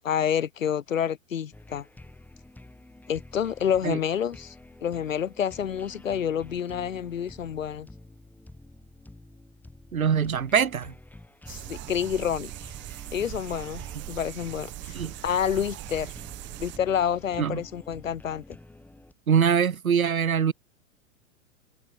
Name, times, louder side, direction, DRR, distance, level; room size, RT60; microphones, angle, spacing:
voice 1, 0.0-1.9 3.1-4.5 4.8-7.9 11.5-12.5 13.1-15.0 15.2-16.1 16.6-18.6, left 8 dB, 70° left, 2.6 m, -28 dB
sound 1, 1.5-19.1, left 2 dB, 5° left, 5.2 m, -49 dB
voice 2, 9.9-10.9 14.9-15.1 17.4-17.6 19.3-20.5, right 7 dB, 80° right, 1.1 m, -23 dB
sound 2, 11.5-16.8, right 18 dB, 25° right, 1.3 m, -40 dB
figure-of-eight pair, 105°, 41 cm